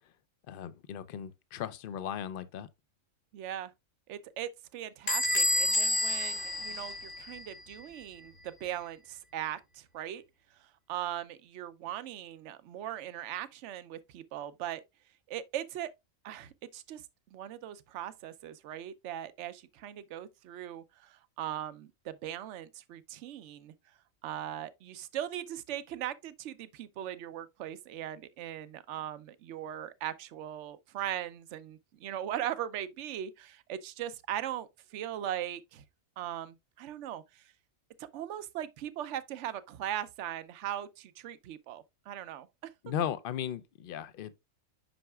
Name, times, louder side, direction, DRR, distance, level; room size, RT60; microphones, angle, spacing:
voice 1, 0.5-2.7 42.8-44.3, left 9 dB, 60° left, 0.6 m, -36 dB
voice 2, 3.3-3.7 4.1-10.2 10.6-14.8 15.3-15.9 16.2-17.0 17.3-23.7 24.2-35.8 36.2-37.4 38.0-42.7, right 11 dB, 65° right, 0.9 m, -39 dB
Bell / Squeak, 5.1-7.6, left 1 dB, 40° left, 1.2 m, -29 dB
7.8 x 5.7 x 2.3 m
omnidirectional pair, 1.4 m